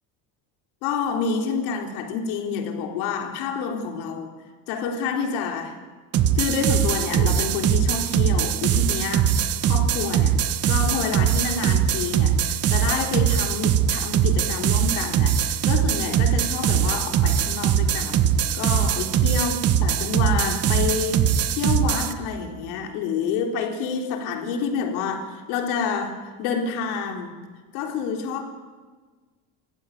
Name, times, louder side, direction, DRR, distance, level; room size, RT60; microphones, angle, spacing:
voice 1, 0.8-4.3 4.7-5.8 6.3-9.4 9.6-10.4 10.7-27.4 27.7-28.4, left 5 dB, 80° left, 4 dB, 4.0 m, -28 dB
sound 1, 6.1-22.1, right 9 dB, 40° right, 1.4 m, -21 dB
29.5 x 16.0 x 9.3 m, 1.4 s
cardioid pair, 160°, 38 cm